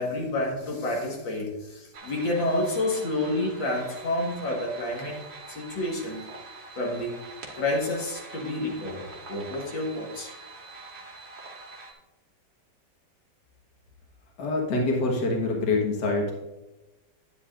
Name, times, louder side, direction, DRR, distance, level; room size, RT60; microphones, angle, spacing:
voice 1, 0.0-5.2 5.5-6.3 6.8-7.2 7.6-10.3, left 1 dB, 85° left, -1 dB, 2.4 m, -29 dB
sound 1, 1.9-11.9, right 3 dB, 75° right, 2.1 m, -44 dB
voice 2, 14.4-16.3, left 2 dB, 60° left, -1 dB, 2.1 m, -25 dB
10.0 x 9.7 x 2.5 m, 1.0 s
omnidirectional pair, 2.0 m